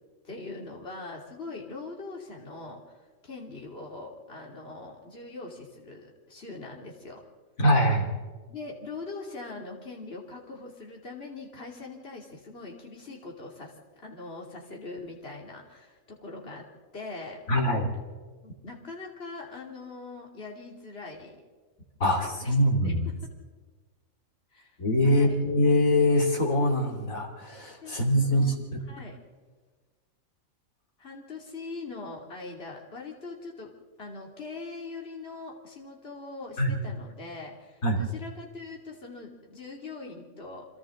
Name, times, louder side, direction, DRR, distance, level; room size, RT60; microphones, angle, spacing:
voice 1, 0.2-2.9 3.2-7.2 8.5-16.7 16.9-17.4 18.4-21.4 22.2-22.5 22.8-23.3 24.5-24.8 25.0-25.4 27.8-28.5 28.8-29.2 31.0-33.7 34.0-40.7, left 3 dB, 45° left, -1 dB, 3.1 m, -42 dB
voice 2, 7.6-8.1 17.5-17.9 22.0-23.1 24.8-28.5 36.6-36.7 37.8-38.0, left 1 dB, 80° left, 1 dB, 3.5 m, -23 dB
29.5 x 26.5 x 3.9 m, 1.4 s
omnidirectional pair, 1.4 m